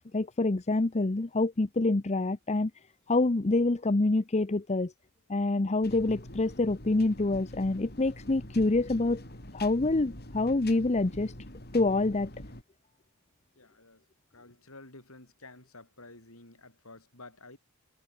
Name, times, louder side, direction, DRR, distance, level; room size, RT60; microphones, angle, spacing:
voice 1, 0.0-2.7 3.1-4.9 5.3-9.2 9.5-11.3 11.7-12.3, left 2 dB, 30° left, 0.7 m, -26 dB
sound 1, 5.8-12.6, left 1 dB, 45° left, 6.6 m, -45 dB
voice 2, 13.6-14.1 14.3-17.6, left 2 dB, 70° left, 6.0 m, -51 dB
head